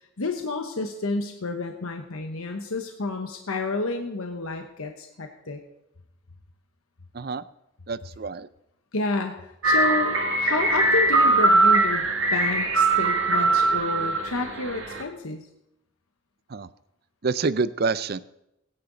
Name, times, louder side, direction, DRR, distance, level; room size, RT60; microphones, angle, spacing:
voice 1, 0.2-5.6 8.9-15.5, left 3 dB, 90° left, 4 dB, 1.1 m, -30 dB
voice 2, 7.9-8.5 16.5-16.7 17.2-18.2, right 4 dB, 45° right, 16 dB, 0.5 m, -27 dB
sound 1, 9.6-15.0, right 2 dB, 65° right, 2.1 m, -21 dB
20.5 x 10.0 x 4.0 m, 0.85 s
head